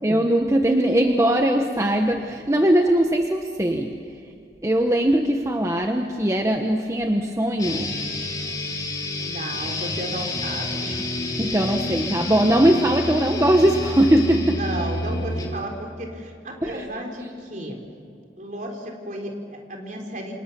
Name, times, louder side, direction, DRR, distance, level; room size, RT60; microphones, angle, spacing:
voice 1, 0.0-4.2 4.6-8.0 11.4-14.6 16.6-16.9, right 1 dB, 15° right, 4 dB, 1.1 m, -20 dB
sound 1, 7.6-15.6, left 2 dB, 20° left, 3.4 m, -29 dB
voice 2, 9.2-11.0 11.4-11.6 14.2-17.8 18.4-20.3, right 1 dB, 45° right, 2 dB, 4.0 m, -33 dB
28.5 x 27.0 x 7.1 m, 2.5 s
head